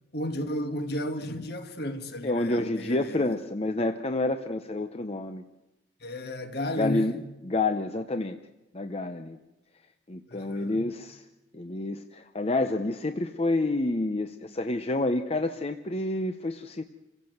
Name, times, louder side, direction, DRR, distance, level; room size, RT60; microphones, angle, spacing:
voice 1, 0.1-3.3 6.0-7.1 10.3-10.9, left 1 dB, 55° left, 1.8 m, -33 dB
voice 2, 2.2-5.4 6.7-8.4 8.7-9.4 10.1-11.2 11.5-16.8, left 2 dB, 30° left, 0.7 m, -29 dB
27.5 x 16.5 x 7.9 m
head